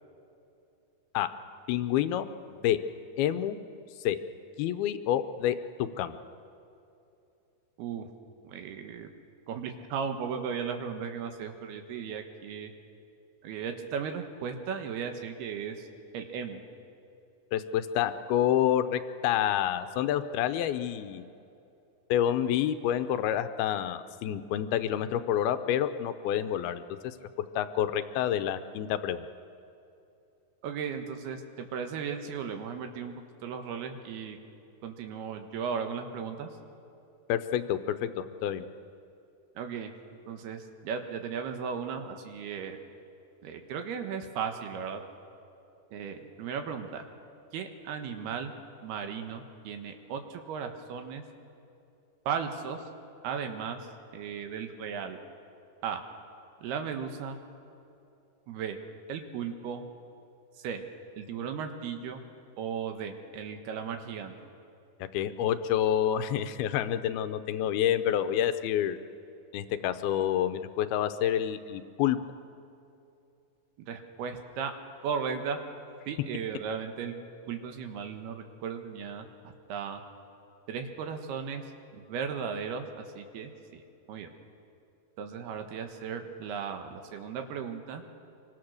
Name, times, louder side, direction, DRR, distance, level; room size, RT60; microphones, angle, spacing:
voice 1, 1.7-2.3 2.6-2.8 3.2-3.6 4.0-4.2 4.6-6.1 17.5-21.2 22.1-27.1 27.6-29.2 37.3-38.6 65.1-69.0 69.5-72.2, left 10 dB, 85° left, 10 dB, 2.7 m, -28 dB
voice 2, 7.8-8.1 8.4-9.1 9.5-12.7 13.4-15.9 16.1-16.6 30.6-33.1 33.4-34.4 34.8-36.5 39.6-39.9 40.3-42.8 43.4-45.0 45.9-47.0 47.5-48.5 48.8-51.2 52.2-52.8 53.2-53.8 54.1-55.2 55.8-56.0 56.6-57.4 58.5-58.8 59.1-59.8 60.6-60.9 61.2-62.2 62.6-64.3 73.9-74.7 75.0-75.6 76.1-77.2 77.5-79.3 79.7-80.0 80.7-81.6 81.9-82.9 83.2-83.8 84.1-84.3 85.2-88.0, right 6 dB, 80° right, 5 dB, 3.4 m, -36 dB
26.0 x 24.0 x 6.6 m, 2.7 s
omnidirectional pair, 4.5 m